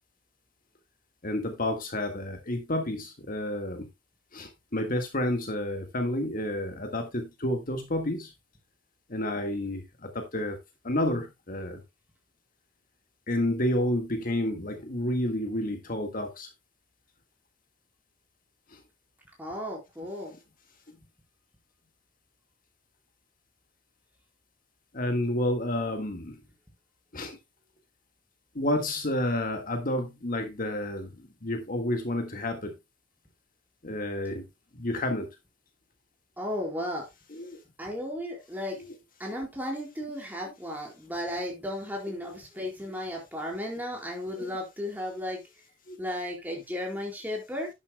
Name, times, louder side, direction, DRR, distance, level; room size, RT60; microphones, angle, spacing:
voice 1, 1.2-3.9 4.3-8.3 9.1-10.6 10.8-11.8 13.3-16.5 18.7-18.8 24.9-26.4 27.1-27.4 28.5-32.7 33.8-34.4 34.8-35.3 37.3-37.6 38.8-39.0 44.4-44.5 45.9-46.0, left 1 dB, 40° left, 1.6 m, -30 dB
voice 2, 19.4-20.4 36.4-37.1 37.8-38.8 39.2-45.4 46.0-47.7, left 1 dB, 10° right, 4.3 m, -34 dB
11.5 x 10.0 x 2.2 m
head